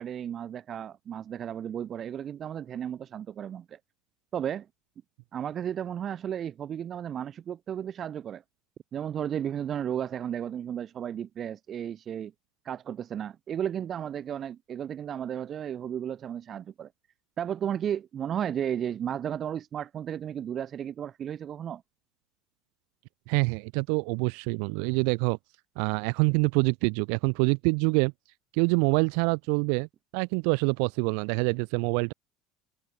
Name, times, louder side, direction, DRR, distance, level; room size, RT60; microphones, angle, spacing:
voice 1, 0.0-3.8 4.3-4.7 5.3-8.4 8.9-12.3 12.6-16.9 17.4-21.8, right 9 dB, 40° right, 3.7 m, -34 dB
voice 2, 23.3-25.4 25.8-28.1 28.5-29.9 30.1-32.1, right 40 dB or more, 75° right, 1.0 m, -26 dB
supercardioid pair, 110°, 0 cm